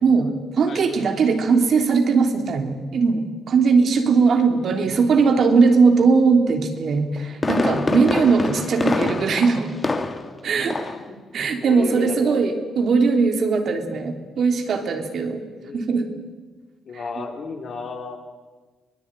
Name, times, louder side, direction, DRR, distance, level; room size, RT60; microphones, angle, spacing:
voice 1, 0.0-9.7 10.4-10.8 11.3-15.4 15.7-16.1, right 5 dB, 60° right, 4 dB, 3.2 m, -19 dB
Fireworks, 6.9-10.4 10.7-11.1 11.4-11.5, left 3 dB, 30° left, 2.0 m, -25 dB
voice 2, 11.6-12.4 12.8-12.9 15.5-15.9 16.9-18.2, left 4 dB, 55° left, 3 dB, 4.2 m, -34 dB
22.5 x 19.5 x 9.1 m, 1.3 s
cardioid pair, 90°, 0 cm